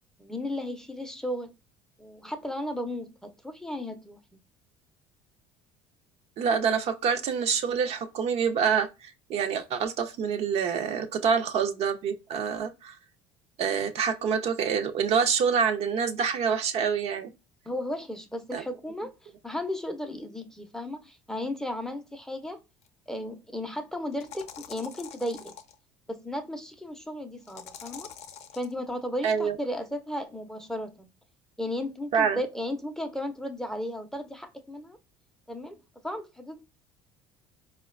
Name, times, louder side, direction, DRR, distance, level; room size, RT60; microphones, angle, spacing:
voice 1, 0.2-1.5 2.0-4.4 17.7-22.6 23.1-25.5 26.1-28.1 28.5-31.1 31.6-35.0 35.5-35.8 36.0-36.6, left 1 dB, 5° left, 0.5 m, -35 dB
voice 2, 6.4-12.9 13.6-17.3 18.5-18.6 29.2-29.6 32.1-32.4, right 6 dB, 55° right, 0.5 m, -26 dB
sound 1, 22.8-22.9 24.1-25.7 27.5-28.7, left 8 dB, 55° left, 0.5 m, -45 dB
4.2 x 2.2 x 2.3 m
supercardioid pair, 80°, 13 cm